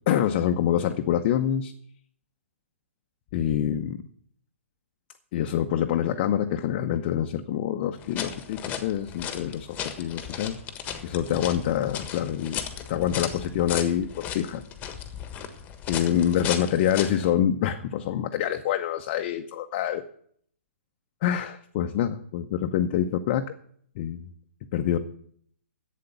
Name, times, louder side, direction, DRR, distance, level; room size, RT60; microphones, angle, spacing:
voice 1, 0.1-1.7 3.3-4.0 5.3-10.6 11.0-12.6 12.9-14.6 15.9-20.0 21.2-23.4 24.0-24.2 24.7-25.0, left 10 dB, 40° left, 6 dB, 0.8 m, -26 dB
sound 1, 8.0-17.3, left 8 dB, 20° left, 1.4 m, -36 dB
11.5 x 8.5 x 6.9 m, 0.63 s
figure-of-eight pair, 120°, 7 cm